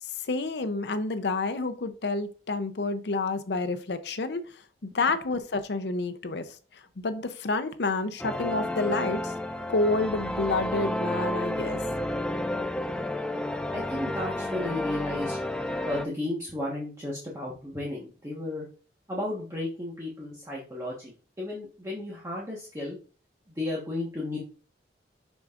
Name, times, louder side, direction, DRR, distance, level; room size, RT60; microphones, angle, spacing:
voice 1, 0.0-9.3 9.7-11.8, left 3 dB, 65° left, 0.6 m, -29 dB
sound 1, 8.2-16.1, left 1 dB, 5° left, 0.3 m, -31 dB
voice 2, 13.7-15.4 15.8-18.7 19.1-23.0 23.5-24.4, left 1 dB, 15° right, 1.2 m, -34 dB
6.2 x 6.1 x 2.5 m
head